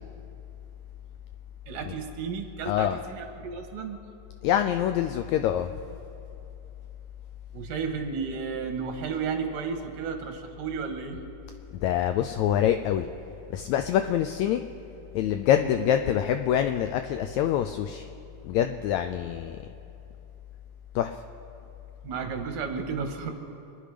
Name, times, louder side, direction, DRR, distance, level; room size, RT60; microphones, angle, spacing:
voice 1, 1.7-4.0 7.5-11.2 15.6-15.8 22.0-23.3, right 5 dB, 85° right, 4 dB, 2.9 m, -33 dB
voice 2, 2.6-3.0 4.4-5.7 11.8-13.1 13.5-14.6 15.1-18.1 18.4-19.6 20.9-21.2, left 10 dB, 85° left, 7 dB, 1.6 m, -25 dB
26.5 x 10.0 x 5.1 m, 2.8 s
omnidirectional pair, 3.7 m